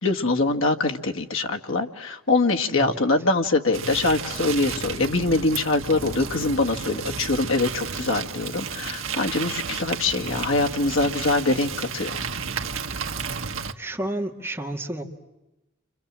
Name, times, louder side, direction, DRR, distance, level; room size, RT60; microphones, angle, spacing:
voice 1, 0.0-12.2, left 2 dB, 65° left, 3 dB, 1.9 m, -23 dB
sound 1, 3.7-13.7, right 5 dB, 70° right, 1.5 m, -32 dB
voice 2, 13.8-15.0, right 1 dB, 10° right, 0 dB, 2.2 m, -31 dB
30.0 x 26.5 x 7.5 m, 0.98 s
head